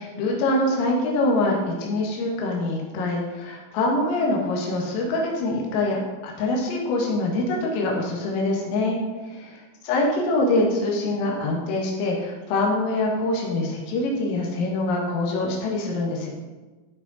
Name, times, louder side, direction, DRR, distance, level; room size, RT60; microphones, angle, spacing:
voice 1, 0.0-9.0 9.2-16.3, left 2 dB, 85° left, -2 dB, 4.2 m, -24 dB
14.0 x 5.3 x 4.0 m, 1.3 s
omnidirectional pair, 5.8 m